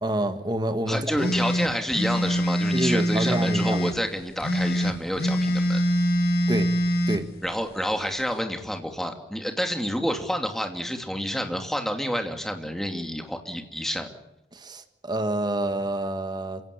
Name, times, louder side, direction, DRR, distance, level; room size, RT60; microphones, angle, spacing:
voice 1, 0.0-1.3 2.7-3.8 6.5-6.7 7.1-7.3 14.5-16.6, right 1 dB, 25° right, 8 dB, 1.7 m, -28 dB
voice 2, 0.9-5.8 7.4-14.1, equal, ahead, 4 dB, 2.7 m, -29 dB
sound 1, 1.2-4.0 4.4-7.2, equal, 60° left, 2.4 m, -24 dB
27.0 x 17.0 x 9.9 m, 0.88 s
head